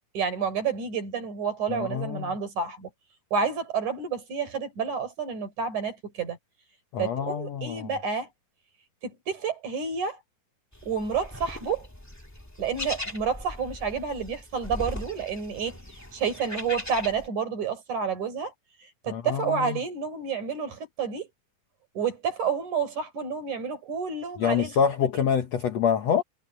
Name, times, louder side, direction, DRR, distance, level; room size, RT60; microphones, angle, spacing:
voice 1, 0.1-2.9 3.3-6.4 7.0-8.3 9.0-10.2 10.8-11.9 12.6-15.8 16.1-18.5 19.0-21.3 22.0-24.7, right 6 dB, 55° right, 5.5 m, -29 dB
voice 2, 1.7-2.3 6.9-7.9 19.1-19.8 24.4-26.2, left 7 dB, 60° left, 1.8 m, -26 dB
sound 1, 10.7-17.3, left 1 dB, 5° left, 1.3 m, -39 dB
omnidirectional pair, 4.2 m